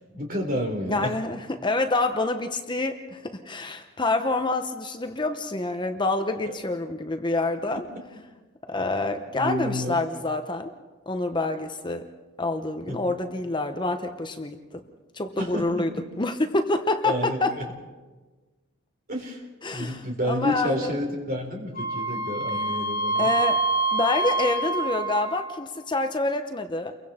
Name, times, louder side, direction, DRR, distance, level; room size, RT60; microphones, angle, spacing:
voice 1, 0.1-1.2 9.3-10.0 12.9-13.1 15.4-15.7 17.0-17.7 19.1-19.4 19.7-23.3, equal, 45° right, 2 dB, 3.8 m, -30 dB
voice 2, 0.9-7.8 8.7-10.7 11.1-12.1 12.4-14.8 15.1-15.9 16.2-17.5 19.6-20.0 20.3-20.9 23.2-23.6 23.9-27.0, left 2 dB, 20° left, 7 dB, 0.9 m, -27 dB
Wind instrument woodwind instrument, 21.7-25.7, right 3 dB, 40° left, 1.7 m, -26 dB
30.0 x 23.0 x 4.3 m, 1.3 s
head